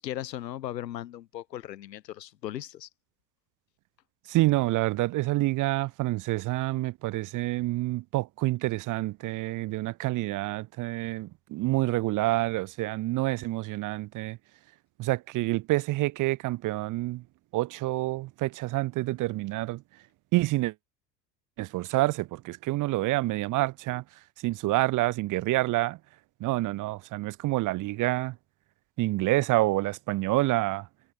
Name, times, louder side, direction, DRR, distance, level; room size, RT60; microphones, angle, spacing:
voice 1, 0.0-2.9, left 12 dB, 80° left, 0.9 m, -37 dB
voice 2, 4.3-14.4 15.0-17.2 17.5-19.8 20.3-20.7 21.6-24.0 24.4-26.0 26.4-28.4 29.0-30.9, right 18 dB, 40° right, 0.7 m, -27 dB
figure-of-eight pair, 65°, 49 cm